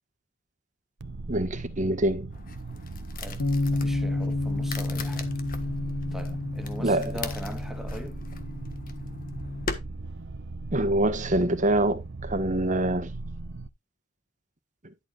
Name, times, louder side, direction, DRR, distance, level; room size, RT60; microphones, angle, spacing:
sound 1, 1.0-13.7, right 2 dB, 60° right, 0.8 m, -38 dB
voice 1, 1.3-2.3 6.8-7.1 10.7-13.1, right 1 dB, 40° right, 1.4 m, -25 dB
sound 2, 2.3-9.8, left 4 dB, 45° left, 1.5 m, -40 dB
voice 2, 3.2-5.4 6.1-8.2, equal, ahead, 1.7 m, -41 dB
Bass guitar, 3.4-9.6, left 2 dB, 70° left, 1.1 m, -31 dB
11.0 x 7.9 x 2.5 m
head